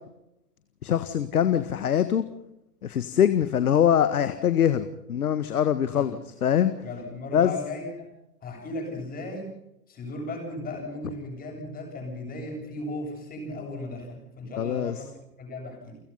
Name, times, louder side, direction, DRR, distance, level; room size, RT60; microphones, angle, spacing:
voice 1, 0.8-2.2 2.8-6.7 7.3-7.5 14.6-14.9, left 9 dB, 70° left, 12 dB, 1.7 m, -23 dB
voice 2, 6.8-8.1 8.4-9.5 9.9-15.1 15.4-16.0, left 2 dB, 20° left, 3 dB, 7.8 m, -36 dB
30.0 x 16.5 x 5.6 m, 0.84 s
hypercardioid pair, 125°, 47 cm